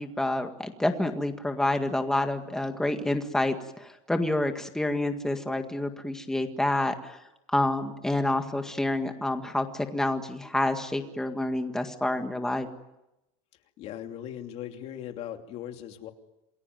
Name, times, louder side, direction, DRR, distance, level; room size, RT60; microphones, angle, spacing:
voice 1, 0.0-7.2 7.5-12.7, left 1 dB, 5° left, 6 dB, 1.8 m, -28 dB
voice 2, 13.8-16.1, left 10 dB, 40° left, 5 dB, 2.7 m, -39 dB
28.5 x 21.0 x 9.4 m, 0.93 s
cardioid pair, 175°, 16 cm